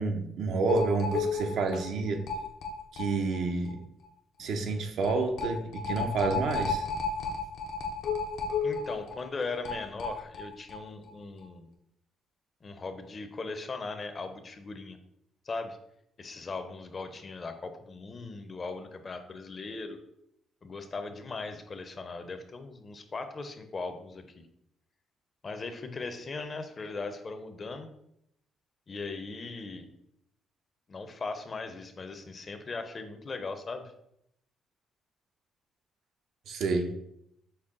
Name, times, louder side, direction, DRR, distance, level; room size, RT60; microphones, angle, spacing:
voice 1, 0.0-2.2 2.9-3.8 4.4-6.9 36.5-37.0, right 3 dB, 75° right, 5 dB, 0.6 m, -29 dB
sound 1, 0.7-3.4 3.7-3.8 4.0-4.1 5.0-10.8 11.1-11.2 11.4-11.5, left 4 dB, 80° left, 0.6 m, -33 dB
voice 2, 8.6-11.7 12.6-15.0 15.4-15.8 16.2-20.0 20.6-24.4 25.4-27.9 28.9-29.9 30.9-33.9, left 3 dB, 40° left, 8 dB, 0.5 m, -39 dB
5.4 x 2.1 x 3.6 m, 0.76 s
cardioid pair, 90°, 0 cm